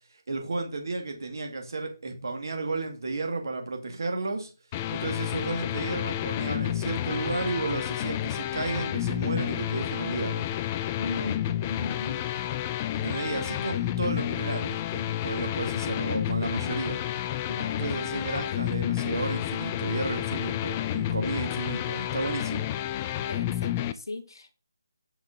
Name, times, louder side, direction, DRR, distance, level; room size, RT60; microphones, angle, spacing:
voice 1, 0.3-4.5 4.9-10.5 12.9-17.0 17.8-22.7, right 3 dB, 60° right, 2.0 m, -33 dB
sound 1, 4.7-23.9, left 12 dB, 20° left, 0.3 m, -30 dB
voice 2, 11.0-12.2 17.5-18.2 23.3-24.5, left 3 dB, 70° left, 1.3 m, -37 dB
5.8 x 4.4 x 5.0 m
figure-of-eight pair, 160°, 2 cm